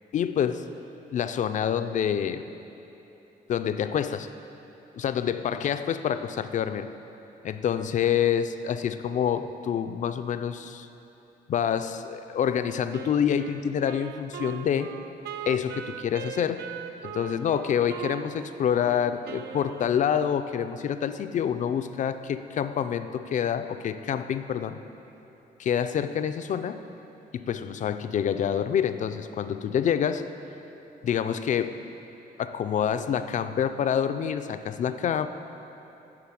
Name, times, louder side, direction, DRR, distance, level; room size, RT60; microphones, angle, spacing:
voice 1, 0.1-0.6 1.1-2.4 3.5-4.3 4.9-6.9 7.4-10.9 11.5-14.9 15.5-16.6 17.0-24.8 25.6-26.8 27.3-30.2 31.0-31.8 32.4-35.3, left 8 dB, 50° left, 10 dB, 0.4 m, -27 dB
Wind instrument woodwind instrument, 12.9-20.4, right 8 dB, 85° right, 0.4 m, -40 dB
11.0 x 4.0 x 7.6 m, 3.0 s
cardioid pair, 140°, 16 cm